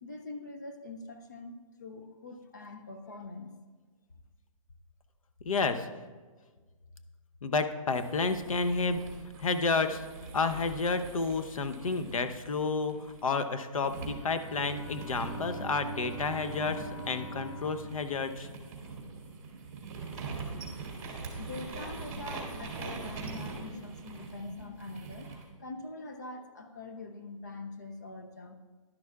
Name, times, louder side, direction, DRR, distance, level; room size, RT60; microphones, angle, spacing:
voice 1, 0.0-3.6 21.4-28.5, left 3 dB, 30° left, 6 dB, 0.5 m, -44 dB
voice 2, 5.4-5.9 7.4-9.0 9.4-10.0 10.3-18.5, left 4 dB, 75° left, 10 dB, 0.8 m, -30 dB
sound 1, 7.9-13.3 13.8-25.5, right 4 dB, 30° right, 2.0 m, -43 dB
Bowed string instrument, 14.0-19.0, equal, 55° left, 2.9 m, -44 dB
11.0 x 11.0 x 2.4 m, 1.4 s
hypercardioid pair, 180°, 18 cm